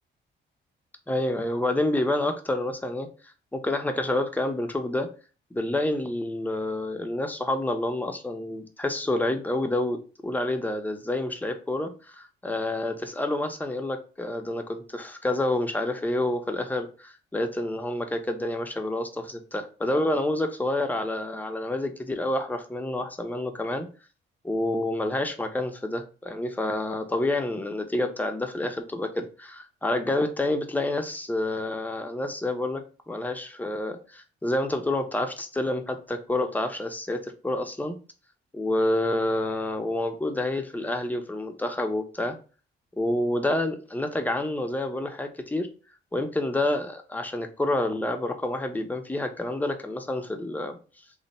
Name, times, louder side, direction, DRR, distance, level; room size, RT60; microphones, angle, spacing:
voice 1, 1.1-3.1 3.5-5.1 5.5-23.9 24.4-38.0 38.5-42.4 42.9-45.7 46.1-50.8, left 1 dB, 10° left, 5 dB, 0.6 m, -28 dB
3.1 x 2.1 x 4.1 m, 0.36 s
cardioid pair, 90°, 20 cm